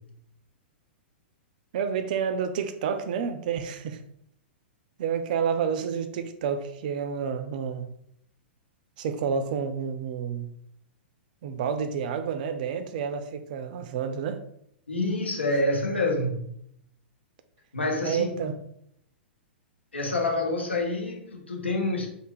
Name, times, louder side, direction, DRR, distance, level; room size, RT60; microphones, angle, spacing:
voice 1, 1.7-4.0 5.0-7.9 9.0-10.5 11.4-14.4 18.0-18.6, right 7 dB, 50° right, 9 dB, 0.4 m, -29 dB
voice 2, 14.9-16.4 17.7-18.4 19.9-22.1, left 2 dB, 80° left, 1 dB, 0.9 m, -27 dB
3.3 x 2.2 x 3.2 m, 0.71 s
figure-of-eight pair, 105°, 6 cm